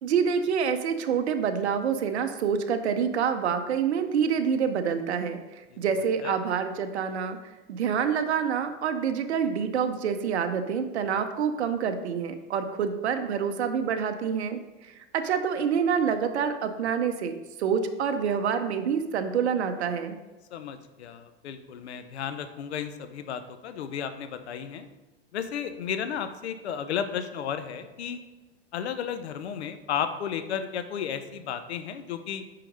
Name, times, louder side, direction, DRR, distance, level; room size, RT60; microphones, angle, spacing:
voice 1, 0.0-7.4 7.7-20.2, right 7 dB, 85° right, 8 dB, 0.8 m, -27 dB
voice 2, 20.5-24.9 25.3-28.2 28.7-32.4, left 8 dB, 80° left, 10 dB, 0.8 m, -33 dB
5.8 x 5.0 x 5.1 m, 1.1 s
hypercardioid pair, 135°, 32 cm